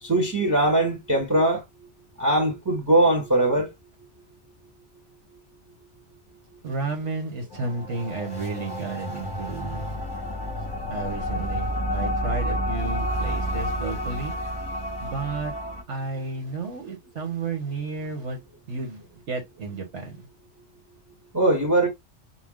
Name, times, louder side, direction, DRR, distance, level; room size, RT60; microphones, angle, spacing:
voice 1, 0.0-1.6 2.2-3.7 21.3-21.9, right 1 dB, 15° right, 0.9 m, -21 dB
voice 2, 6.6-9.9 10.9-14.3 15.0-15.5 15.9-18.4 18.7-20.3, right 3 dB, 80° right, 1.7 m, -32 dB
sound 1, 7.5-15.8, equal, 25° left, 0.9 m, -30 dB
4.8 x 2.2 x 3.7 m
omnidirectional pair, 1.2 m